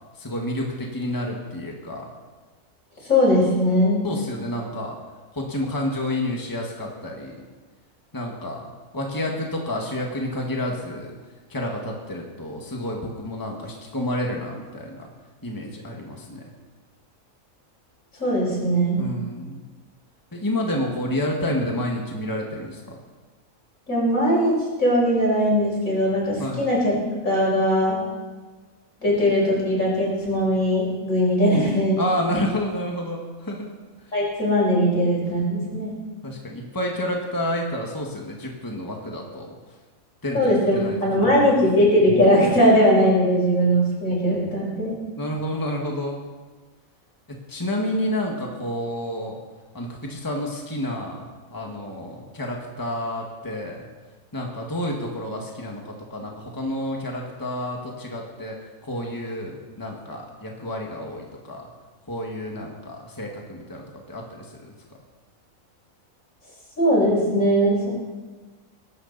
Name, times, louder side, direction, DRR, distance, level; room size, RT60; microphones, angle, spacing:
voice 1, 0.1-2.1 4.0-5.0 5.3-7.4 8.1-8.7 8.9-11.1 11.5-15.1 15.4-16.4 19.0-19.6 20.3-23.0 26.4-26.7 32.0-33.7 34.0-34.1 36.2-39.5 40.2-41.0 41.4-41.6 45.2-46.2 47.5-49.4 49.7-51.3 51.5-53.9 54.3-58.6 58.8-61.7 62.1-64.7, left 1 dB, 15° left, 0 dB, 1.9 m, -29 dB
voice 2, 3.1-4.0 18.2-19.1 23.9-24.5 24.8-26.9 27.2-28.0 29.0-32.0 34.1-36.0 40.3-45.0 66.8-67.9, equal, 75° left, -5 dB, 6.2 m, -20 dB
22.5 x 12.0 x 4.2 m, 1.3 s
omnidirectional pair, 1.4 m